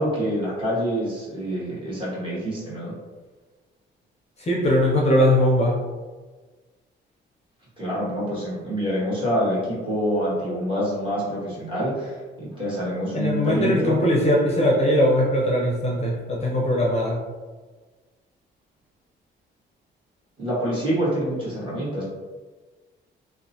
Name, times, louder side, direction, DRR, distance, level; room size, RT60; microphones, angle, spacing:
voice 1, 0.0-2.9 7.8-14.0 20.4-22.1, equal, 25° right, -7 dB, 1.4 m, -26 dB
voice 2, 4.4-5.7 13.1-17.2, left 1 dB, 35° left, -3 dB, 0.6 m, -20 dB
2.8 x 2.1 x 2.7 m, 1.3 s
cardioid pair, 90°, 20 cm